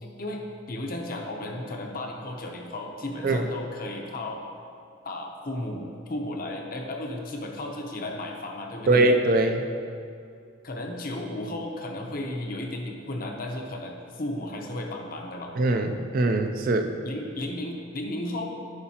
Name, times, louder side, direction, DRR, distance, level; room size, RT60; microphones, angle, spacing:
voice 1, 0.0-4.4 5.0-9.0 10.6-15.5 17.0-18.5, left 1 dB, 45° left, 1 dB, 0.7 m, -34 dB
voice 2, 8.9-9.6 15.6-16.9, right 2 dB, 40° right, 6 dB, 0.4 m, -22 dB
9.5 x 5.5 x 2.9 m, 2.4 s
head